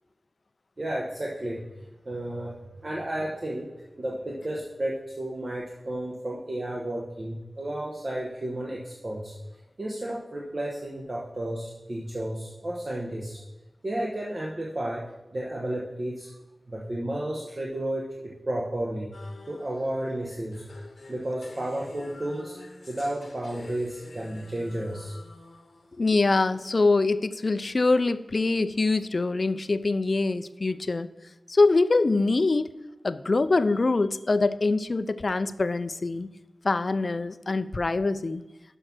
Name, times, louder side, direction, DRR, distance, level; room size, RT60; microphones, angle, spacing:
voice 1, 0.8-1.7 2.0-3.7 4.0-9.4 9.8-13.4 13.8-16.3 16.7-19.1 19.5-20.6 21.1-22.6 22.9-25.1, right 1 dB, 40° right, -3 dB, 1.1 m, -32 dB
sound 1, 19.1-26.4, left 3 dB, 70° left, 0.9 m, -48 dB
voice 2, 26.0-31.1 31.5-32.7 33.0-36.3 36.6-38.4, left 3 dB, 50° left, 14 dB, 0.4 m, -24 dB
6.5 x 5.4 x 6.1 m, 1.0 s
wide cardioid pair, 75°, 0 cm